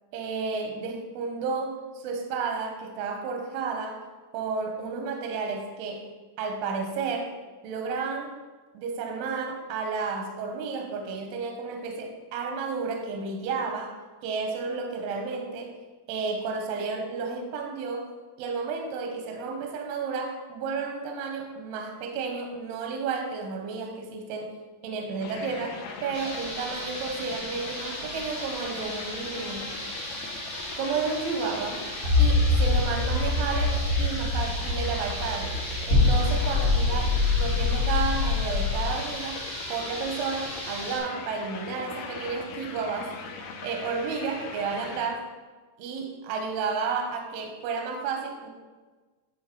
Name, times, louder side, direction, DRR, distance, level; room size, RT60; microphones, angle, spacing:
voice 1, 0.1-4.0 4.3-6.1 6.4-7.3 7.6-8.3 8.7-14.0 14.2-15.7 16.1-18.1 18.4-24.5 24.8-29.8 30.8-31.9 32.2-35.6 35.9-45.3 45.8-48.5, right 4 dB, 80° right, 3 dB, 2.3 m, -32 dB
sound 1, 25.2-45.1, left 5 dB, 90° left, 3.3 m, -40 dB
sound 2, 26.1-41.0, equal, 65° right, 0.9 m, -37 dB
sound 3, 32.0-38.9, left 3 dB, 55° left, 2.0 m, -24 dB
10.5 x 3.7 x 2.9 m, 1.3 s
omnidirectional pair, 5.6 m